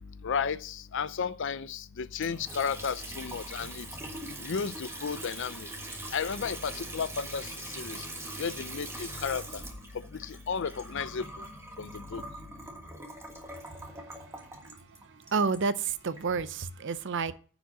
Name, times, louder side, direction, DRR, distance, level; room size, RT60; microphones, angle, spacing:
voice 1, 0.2-3.9 4.4-5.7 6.1-8.1 8.4-9.6 9.9-11.5 11.8-12.2, left 6 dB, 55° left, 0.5 m, -33 dB
Water tap faucet / Sink (filling or washing) / Trickle dribble, 2.2-16.3, right 1 dB, 10° right, 1.5 m, -42 dB
voice 2, 13.5-17.3, right 5 dB, 55° right, 0.6 m, -32 dB
9.9 x 5.1 x 8.0 m
head